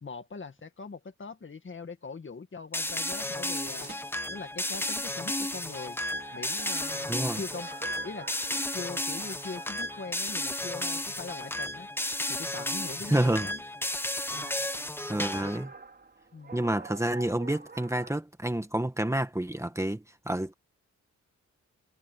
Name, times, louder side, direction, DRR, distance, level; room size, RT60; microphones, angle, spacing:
voice 1, 0.0-3.9 4.3-6.0 6.3-11.9 12.3-13.6 14.3-14.6 16.3-16.6, left 4 dB, 40° left, 2.0 m, -42 dB
sound 1, 2.7-15.6, left 1 dB, 5° left, 0.9 m, -33 dB
sound 2, 3.5-18.1, right 3 dB, 35° right, 4.3 m, -49 dB
voice 2, 7.1-7.4 13.1-13.5 15.1-15.7 16.5-20.5, right 1 dB, 10° right, 1.8 m, -29 dB
wide cardioid pair, 105°, 30 cm